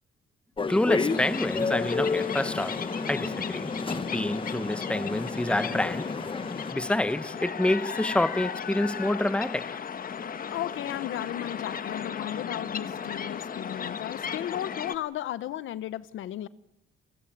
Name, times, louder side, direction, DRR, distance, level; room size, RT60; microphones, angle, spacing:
sound 1, 0.6-6.7, left 4 dB, 25° left, 1.1 m, -31 dB
voice 1, 0.7-3.7 4.1-6.1 6.7-9.8, left 1 dB, 5° left, 0.9 m, -28 dB
sound 2, 1.1-15.0, left 7 dB, 45° left, 1.2 m, -36 dB
voice 2, 10.5-16.5, left 12 dB, 80° left, 0.9 m, -35 dB
29.5 x 14.5 x 8.8 m
cardioid pair, 90°, 20 cm